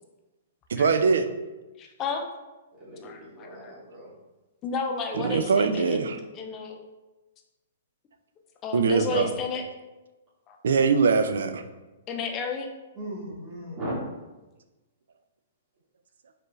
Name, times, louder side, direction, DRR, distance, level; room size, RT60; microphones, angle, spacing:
voice 1, 0.7-1.3 5.2-6.2 8.7-9.3 10.6-11.6, right 5 dB, 80° right, 8 dB, 0.4 m, -22 dB
voice 2, 1.8-2.3 3.0-3.7 4.6-6.8 8.6-9.6 10.5-10.6 12.1-12.7, left 5 dB, 20° left, 3 dB, 0.4 m, -32 dB
voice 3, 2.8-4.1 12.9-14.0, equal, 20° right, -10 dB, 1.1 m, -37 dB
4.6 x 2.4 x 3.1 m, 1.1 s
hypercardioid pair, 165°, 0 cm